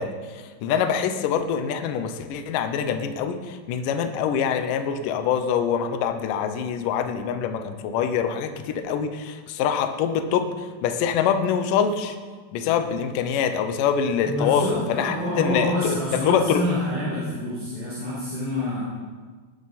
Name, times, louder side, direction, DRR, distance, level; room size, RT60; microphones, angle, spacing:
voice 1, 0.0-12.2 12.5-16.6, left 7 dB, 75° left, 7 dB, 2.0 m, -25 dB
voice 2, 14.2-18.8, left 1 dB, ahead, -10 dB, 4.6 m, -27 dB
20.0 x 10.5 x 4.2 m, 1.5 s
omnidirectional pair, 5.0 m